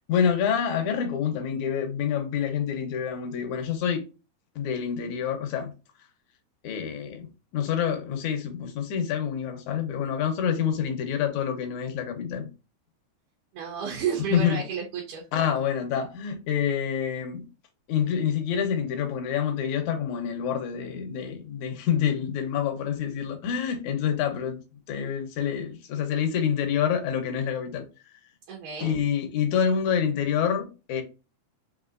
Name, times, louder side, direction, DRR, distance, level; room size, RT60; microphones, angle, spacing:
voice 1, 0.1-4.0 4.6-5.7 6.6-7.3 7.5-12.5 14.3-14.6 15.3-17.4 17.9-24.6 24.9-27.8 28.8-31.0, left 8 dB, 75° left, 2.2 m, -27 dB
voice 2, 13.5-15.3 28.5-28.9, right 7 dB, 90° right, 2.4 m, -31 dB
5.5 x 2.8 x 2.5 m
omnidirectional pair, 3.6 m